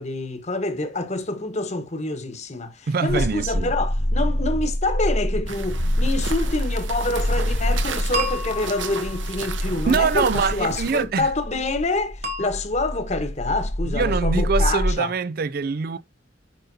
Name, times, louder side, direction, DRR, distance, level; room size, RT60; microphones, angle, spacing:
voice 1, 0.0-15.1, left 2 dB, 35° left, 1.2 m, -27 dB
voice 2, 2.9-3.7 9.9-11.3 13.8-16.0, right 5 dB, 50° right, 0.4 m, -24 dB
sound 1, 3.1-14.9, left 1 dB, 75° left, 2.1 m, -26 dB
sound 2, 5.5-11.0, right 5 dB, 75° right, 1.1 m, -35 dB
sound 3, 8.1-9.7 12.2-12.5, equal, 35° right, 1.3 m, -31 dB
9.5 x 5.5 x 2.7 m
head